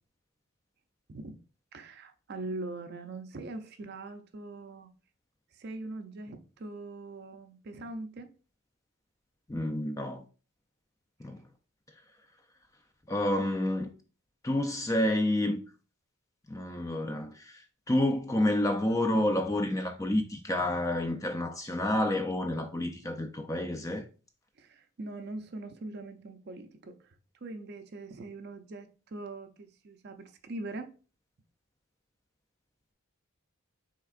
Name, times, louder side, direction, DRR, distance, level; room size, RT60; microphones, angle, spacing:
voice 1, 1.7-4.9 5.6-8.3 24.6-27.1 27.4-30.9, right 2 dB, 45° right, 0.5 m, -42 dB
voice 2, 9.5-10.2 11.2-11.4 13.1-13.9 14.4-15.6 16.5-17.6 17.9-24.0, left 1 dB, 15° left, 0.4 m, -29 dB
5.8 x 3.6 x 2.4 m
head